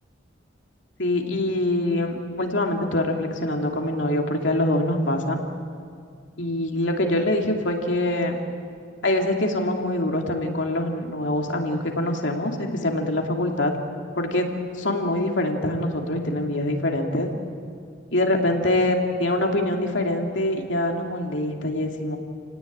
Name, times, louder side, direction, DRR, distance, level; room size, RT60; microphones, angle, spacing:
voice 1, 1.0-5.4 6.4-8.4 9.0-13.7 14.2-17.3 18.1-22.2, left 1 dB, 70° left, 2 dB, 2.8 m, -24 dB
29.0 x 18.5 x 8.9 m, 2.3 s
head